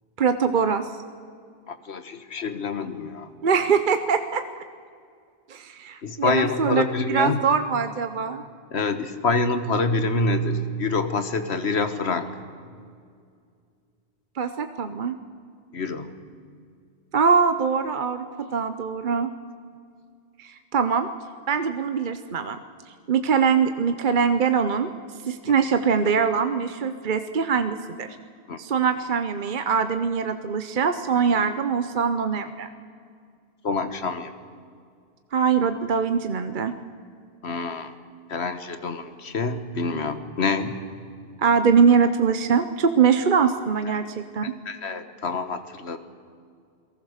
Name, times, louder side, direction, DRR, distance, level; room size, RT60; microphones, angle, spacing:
voice 1, 0.2-0.9 3.4-4.4 5.5-6.8 7.1-8.4 14.4-15.2 17.1-19.3 20.4-21.1 21.5-22.6 23.1-24.9 25.3-28.1 28.6-32.7 35.3-36.7 41.4-44.5, right 6 dB, 50° right, 9 dB, 1.0 m, -22 dB
voice 2, 1.7-3.3 6.0-7.4 8.7-12.3 15.7-16.1 25.5-25.6 28.5-28.6 33.6-34.3 37.4-37.9 38.3-40.8 43.9-44.0 44.4-46.0, left 3 dB, 75° left, 10 dB, 1.6 m, -26 dB
28.5 x 18.5 x 6.6 m, 2.2 s
omnidirectional pair, 1.1 m